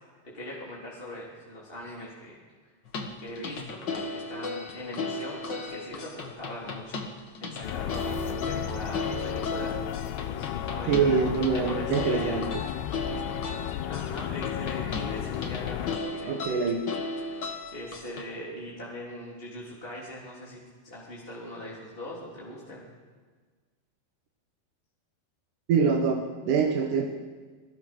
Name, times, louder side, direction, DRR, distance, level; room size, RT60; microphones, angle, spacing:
voice 1, 0.2-2.4 3.2-9.8 10.2-12.3 13.8-16.4 16.8-22.9, left 1 dB, 15° left, -5 dB, 3.2 m, -41 dB
sound 1, 2.8-18.2, left 3 dB, 65° left, 1.0 m, -36 dB
sound 2, 7.6-16.0, left 11 dB, 85° left, 3.0 m, -33 dB
voice 2, 10.9-12.6 16.2-17.0 25.7-27.1, right 5 dB, 60° right, 1 dB, 2.5 m, -25 dB
26.5 x 21.0 x 6.2 m, 1.5 s
omnidirectional pair, 4.7 m